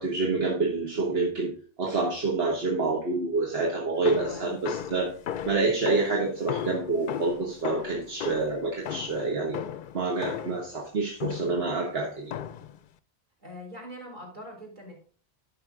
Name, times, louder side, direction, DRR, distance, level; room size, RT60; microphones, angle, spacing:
voice 1, 0.0-1.5 1.8-5.1 5.4-9.6 9.9-12.3, right 3 dB, 70° right, -1 dB, 1.6 m, -27 dB
sound 1, 4.1-10.7 11.2-11.7 12.3-12.8, left 9 dB, 60° left, 0.6 m, -35 dB
voice 2, 4.1-4.5 13.4-14.9, left 1 dB, 50° right, -1 dB, 3.6 m, -42 dB
10.5 x 5.7 x 3.6 m, 0.40 s
omnidirectional pair, 1.1 m